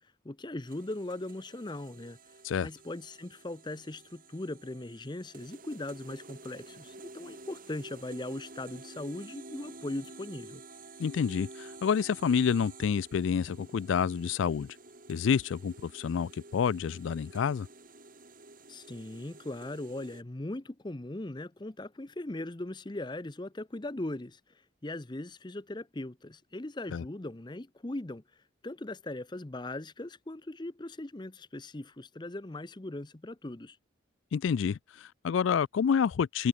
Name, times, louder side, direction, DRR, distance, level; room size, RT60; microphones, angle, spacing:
voice 1, 0.2-10.6 18.7-24.4 24.8-28.2 28.6-33.8, left 1 dB, 20° left, 0.7 m, -39 dB
sound 1, 0.7-20.2, right 2 dB, 45° right, 3.9 m, -51 dB
voice 2, 11.0-14.7 15.1-17.7 26.9-27.0 34.3-36.5, left 7 dB, 75° left, 0.3 m, -28 dB
head